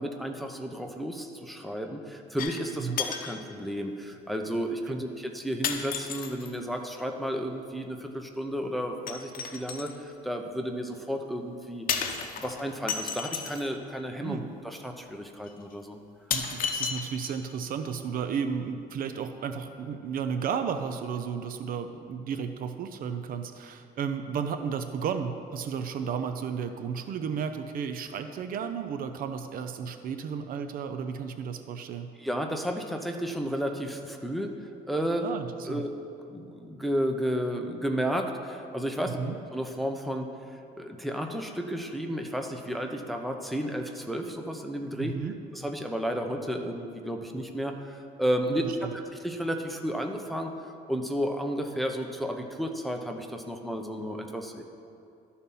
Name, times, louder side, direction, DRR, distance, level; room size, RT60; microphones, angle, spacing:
voice 1, 0.0-11.9 12.3-16.0 32.2-34.5 34.9-35.3 35.7-35.9 36.3-39.2 39.5-45.1 45.5-48.9 49.2-50.5 50.9-54.6, equal, ahead, 3 dB, 0.7 m, -32 dB
sound 1, 2.4-2.7 3.0-3.4 4.3-4.4 5.6-6.5 9.1-10.0 11.9-13.7 14.8-14.9 15.5-15.6 16.3-17.6 17.9-18.0, left 7 dB, 55° left, 0.8 m, -33 dB
voice 2, 16.3-32.1 35.2-35.8 39.2-39.4 45.0-45.3 48.5-48.9, right 6 dB, 55° right, 8 dB, 0.5 m, -33 dB
12.5 x 4.3 x 5.4 m, 2.6 s
cardioid pair, 110°, 17 cm